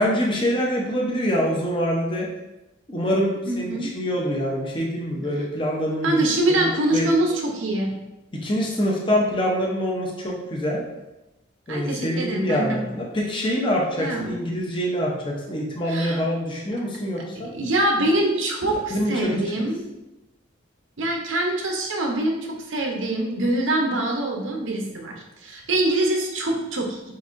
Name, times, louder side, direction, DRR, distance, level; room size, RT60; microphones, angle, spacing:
voice 1, 0.0-2.3 2.9-6.2 6.5-7.1 8.3-10.8 11.7-17.5 18.9-19.1, equal, 25° left, -2 dB, 0.6 m, -25 dB
voice 2, 3.5-3.9 6.0-7.9 11.7-12.9 14.0-14.4 15.9-16.2 17.5-19.8 21.0-27.1, right 1 dB, 80° right, 1 dB, 0.8 m, -24 dB
6.9 x 2.7 x 2.5 m, 0.99 s
head